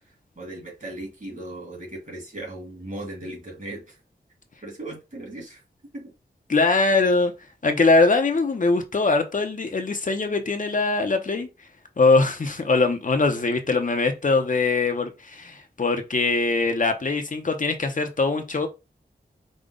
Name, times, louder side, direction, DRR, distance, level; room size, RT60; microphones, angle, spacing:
voice 1, 0.4-4.0 4.6-5.6 5.9-6.1, right 1 dB, 45° right, 2.5 m, -37 dB
voice 2, 6.5-7.3 7.6-11.5 12.0-18.7, left 3 dB, 50° left, 0.8 m, -22 dB
5.1 x 2.3 x 3.8 m
wide cardioid pair, 90°, 18 cm